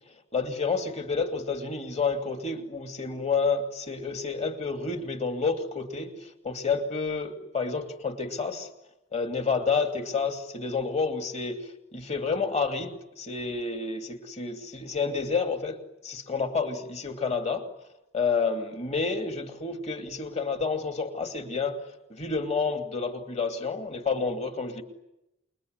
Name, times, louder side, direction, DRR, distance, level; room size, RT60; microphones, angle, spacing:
voice 1, 0.3-8.7 9.1-15.8 16.0-17.7 18.1-21.8 22.1-24.8, left 4 dB, 35° left, 2.6 m, -29 dB
27.5 x 22.5 x 9.6 m
head